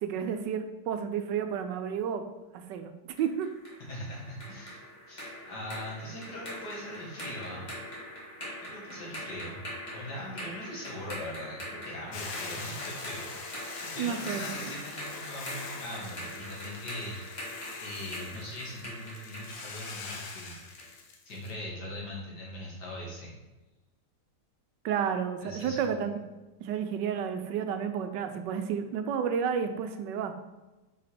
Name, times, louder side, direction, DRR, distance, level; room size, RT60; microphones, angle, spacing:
voice 1, 0.0-2.2 2.5-2.9 3.2-3.5 14.0-14.7 24.8-26.1 26.6-30.3, right 7 dB, 80° right, 7 dB, 1.2 m, -31 dB
sound 1, 3.2-21.0, equal, 25° left, 1.7 m, -43 dB
voice 2, 3.9-4.8 5.1-7.7 8.6-9.6 9.9-13.3 13.6-17.5 17.8-20.6 21.2-23.4 25.4-26.0, left 1 dB, 65° left, -4 dB, 2.5 m, -41 dB
Hiss / Boiling, 12.1-21.5, left 4 dB, 80° left, 1.6 m, -43 dB
5.2 x 4.9 x 4.2 m, 1.1 s
omnidirectional pair, 1.9 m